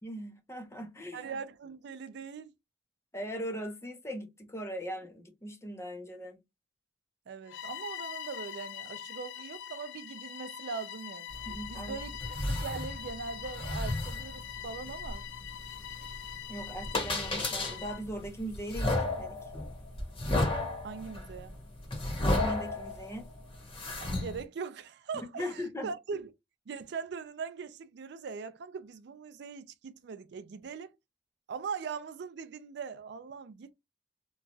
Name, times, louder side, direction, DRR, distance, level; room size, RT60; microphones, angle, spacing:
voice 1, 0.0-1.3 3.1-6.4 11.5-12.0 16.5-19.4 22.2-23.3 25.4-25.9, equal, 15° left, 0.7 m, -39 dB
voice 2, 1.1-2.5 7.3-11.3 11.7-12.1 12.5-15.3 20.8-21.6 24.0-26.3 26.7-30.9 31.5-33.7, right 5 dB, 65° right, 0.4 m, -41 dB
Bowed string instrument, 7.5-18.1, left 9 dB, 75° left, 0.4 m, -43 dB
sound 1, 11.3-24.4, left 2 dB, 30° left, 1.1 m, -34 dB
3.0 x 2.3 x 2.6 m
head